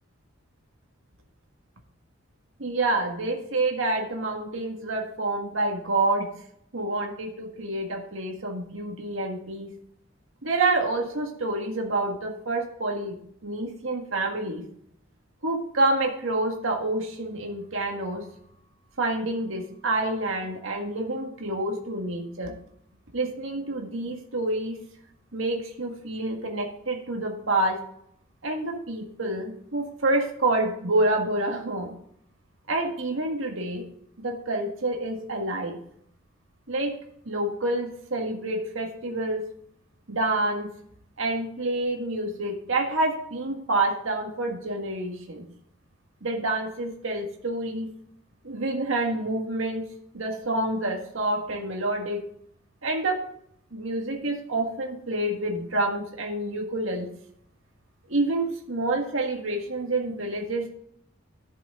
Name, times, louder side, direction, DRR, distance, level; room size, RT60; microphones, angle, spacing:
voice 1, 2.6-6.3 6.7-9.7 10.4-13.1 13.4-14.6 15.4-18.2 19.0-22.5 23.1-24.8 25.3-27.8 28.4-31.9 32.7-33.8 34.2-35.8 36.7-36.9 37.3-39.4 40.1-40.7 41.2-45.4 46.2-47.9 48.4-49.8 50.1-52.2 52.8-53.2 53.7-57.1 58.1-60.7, right 2 dB, 75° right, 1 dB, 1.8 m, -28 dB
11.5 x 6.7 x 3.7 m, 0.69 s
head